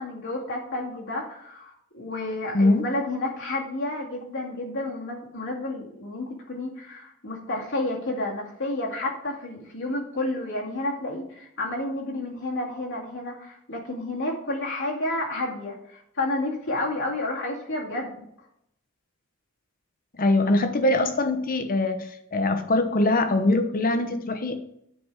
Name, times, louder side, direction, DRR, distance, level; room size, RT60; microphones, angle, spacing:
voice 1, 0.0-18.2, left 2 dB, 60° left, -2 dB, 2.3 m, -31 dB
voice 2, 2.5-2.9 20.2-24.6, left 2 dB, 40° left, 8 dB, 1.0 m, -22 dB
9.7 x 5.3 x 4.7 m, 0.73 s
head